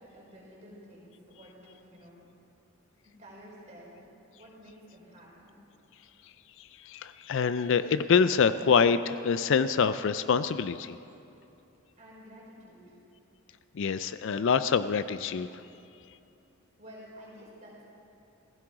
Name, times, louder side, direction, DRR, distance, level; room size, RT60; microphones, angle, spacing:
voice 1, 0.0-2.2 3.0-4.0 4.4-5.6 12.0-13.0 16.8-17.9, equal, 30° right, -5 dB, 4.5 m, -51 dB
voice 2, 6.9-11.0 13.8-15.5, left 6 dB, 55° left, 13 dB, 0.4 m, -25 dB
16.0 x 15.5 x 4.9 m, 2.7 s
head